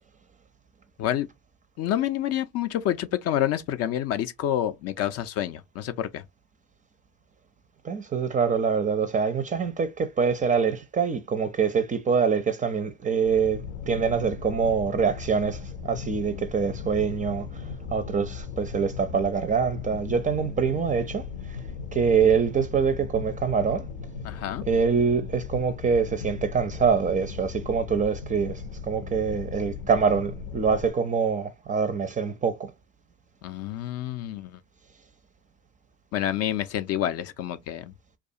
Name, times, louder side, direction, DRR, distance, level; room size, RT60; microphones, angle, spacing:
voice 1, 1.8-6.2 16.3-16.4 24.2-24.6 33.4-34.6 36.1-37.8, left 11 dB, 45° left, 0.4 m, -28 dB
voice 2, 7.8-21.6 21.9-23.9 24.6-32.7, right 6 dB, 20° right, 0.4 m, -25 dB
sound 1, 13.2-30.9, left 6 dB, 85° left, 0.7 m, -37 dB
2.4 x 2.3 x 2.6 m
hypercardioid pair, 70°, 36 cm